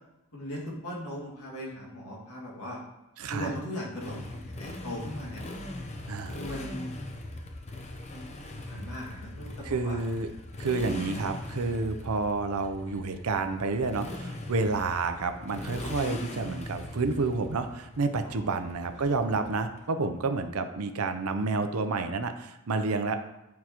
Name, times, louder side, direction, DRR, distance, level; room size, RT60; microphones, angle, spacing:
voice 1, 0.3-2.8 3.3-5.4 6.3-6.9 8.1-8.2 8.7-9.5 9.8-10.0 10.8-11.2 18.2-18.6, equal, 80° left, -3 dB, 2.1 m, -38 dB
voice 2, 3.2-3.5 6.1-6.4 9.6-10.3 10.6-23.1, right 3 dB, 80° right, 7 dB, 0.6 m, -29 dB
Motorcycle, 4.0-19.8, left 1 dB, 30° left, 0.7 m, -40 dB
9.3 x 4.7 x 3.0 m, 0.96 s
head